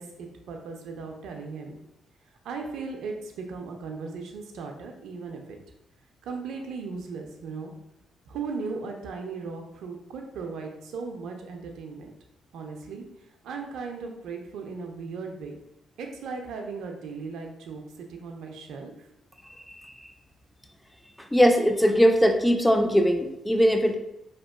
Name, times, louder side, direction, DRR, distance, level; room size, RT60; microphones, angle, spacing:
voice 1, 0.0-1.8 2.4-5.6 6.2-7.7 8.3-12.1 12.5-13.0 13.4-15.6 16.0-19.1, right 4 dB, 70° right, 3 dB, 0.3 m, -37 dB
voice 2, 21.3-24.0, equal, 10° left, 5 dB, 0.3 m, -20 dB
2.8 x 2.2 x 2.2 m, 0.85 s
hypercardioid pair, 45°, 0 cm